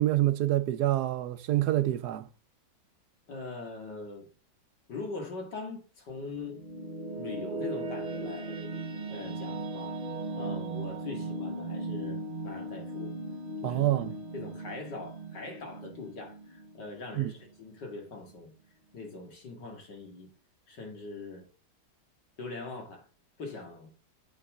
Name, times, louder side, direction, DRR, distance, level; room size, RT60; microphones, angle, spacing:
voice 1, 0.0-2.3 13.6-14.2 17.2-17.3, right 14 dB, 70° right, 1.1 m, -27 dB
voice 2, 3.3-4.3 4.9-6.6 7.2-8.8 9.1-10.0 10.3-13.2 13.6-13.8 14.3-18.5 18.9-20.3 20.7-21.5 22.4-23.1 23.4-23.9, left 3 dB, 75° left, 2.9 m, -42 dB
sound 1, 6.2-17.4, right 2 dB, 35° right, 1.2 m, -38 dB
8.5 x 8.1 x 3.7 m
omnidirectional pair, 1.9 m